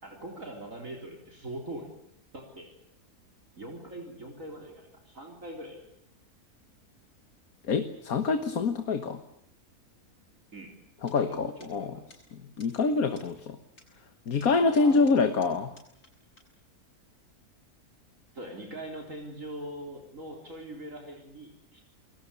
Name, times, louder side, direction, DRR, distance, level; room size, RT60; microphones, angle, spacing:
voice 1, 0.0-1.9 2.3-2.7 3.6-5.8 10.5-10.7 11.2-11.5 11.8-12.1 14.8-15.3 18.3-21.8, right 1 dB, 60° right, 1 dB, 4.4 m, -42 dB
voice 2, 7.7-9.2 11.0-12.0 12.3-13.6 14.3-15.7, left 4 dB, 70° left, 8 dB, 1.9 m, -26 dB
sound 1, 11.1-11.2 11.6-11.7 12.1-12.2 12.6-12.7 13.2-13.3 13.8-13.9 14.4-16.1 16.4-16.5, left 2 dB, 85° left, 8.3 m, -55 dB
29.5 x 22.0 x 7.0 m, 0.75 s
omnidirectional pair, 1.6 m